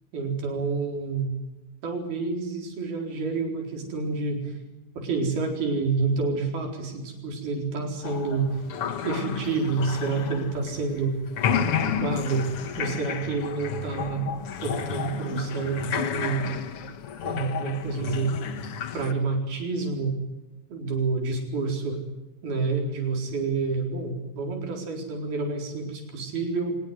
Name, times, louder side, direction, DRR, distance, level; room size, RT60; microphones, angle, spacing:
voice 1, 0.1-1.3 1.8-4.5 5.0-8.5 9.0-11.1 11.7-12.4 12.8-14.3 14.6-16.5 17.2-18.3 18.9-20.1 20.7-22.0 22.4-26.8, right 4 dB, 85° right, 3 dB, 6.2 m, -28 dB
sound 1, 8.0-11.0 11.3-19.1, left 8 dB, 55° left, 1.7 m, -31 dB
24.5 x 20.0 x 9.5 m, 0.99 s
omnidirectional pair, 4.2 m